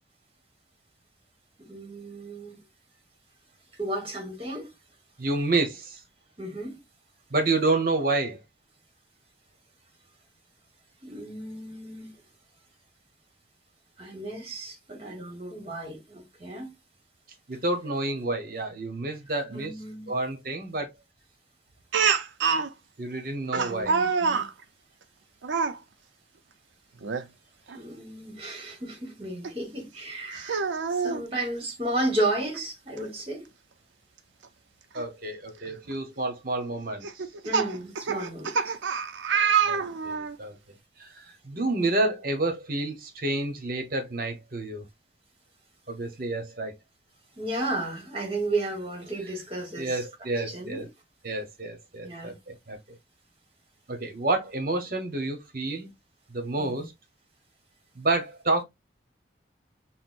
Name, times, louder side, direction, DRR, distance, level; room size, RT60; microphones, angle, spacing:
voice 1, 1.6-2.6 3.8-4.7 6.4-6.8 11.0-12.2 14.0-16.7 19.3-20.1 23.5-24.5 27.7-30.6 31.0-33.5 37.4-38.7 47.4-50.0 50.5-50.9 52.0-52.3 56.6-56.7, right 1 dB, 30° right, 1.2 m, -33 dB
voice 2, 5.2-6.0 7.3-8.4 17.5-19.7 20.1-20.9 23.0-23.9 34.9-37.2 39.7-40.5 41.0-44.8 45.9-46.8 49.8-50.9 51.2-52.8 53.9-55.9 56.3-56.9 57.9-58.6, right 2 dB, 50° right, 0.9 m, -29 dB
Speech, 21.9-22.7 23.5-24.5 25.4-25.8 27.0-27.3 27.7-27.8 29.4-29.5 30.3-31.2 32.6-32.7 33.0-33.1 35.0-35.1 35.7-35.9 37.0-40.4, right 6 dB, 80° right, 0.5 m, -26 dB
5.8 x 2.0 x 2.5 m
head